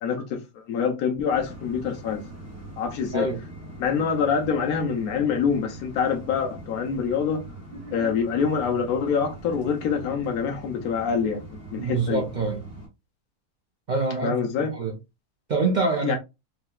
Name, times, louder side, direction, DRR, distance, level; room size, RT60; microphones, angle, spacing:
voice 1, 0.0-2.2 2.8-3.3 3.8-7.5 7.9-12.2 14.2-14.8 16.0-16.2, left 6 dB, 80° left, 1.1 m, -25 dB
sound 1, 1.3-12.9, right 1 dB, 10° right, 1.2 m, -42 dB
voice 2, 7.7-8.1 9.9-10.0 11.7-12.6 13.9-14.4 14.7-14.9 15.5-16.2, right 3 dB, 65° right, 0.4 m, -26 dB
4.0 x 2.8 x 2.2 m
omnidirectional pair, 1.5 m